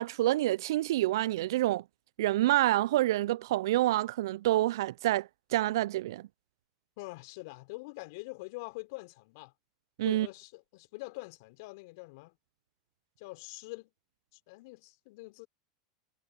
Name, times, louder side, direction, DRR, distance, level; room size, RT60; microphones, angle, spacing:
voice 1, 0.0-1.8 2.2-6.2 10.0-10.3, right 15 dB, 70° right, 0.4 m, -27 dB
voice 2, 7.0-9.5 10.0-12.4 13.2-13.9 14.3-15.5, left 25 dB, 60° left, 4.2 m, -44 dB
hypercardioid pair, 85°, 2 cm